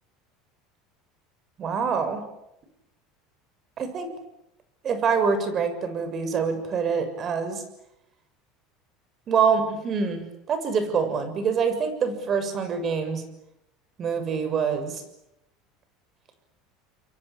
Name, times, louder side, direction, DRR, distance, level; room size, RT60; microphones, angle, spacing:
voice 1, 1.6-2.2 3.8-4.1 4.8-7.6 9.3-13.2 14.0-15.0, right 6 dB, 40° right, 9 dB, 6.9 m, -25 dB
29.0 x 23.5 x 8.5 m, 0.84 s
supercardioid pair, 100°, 0 cm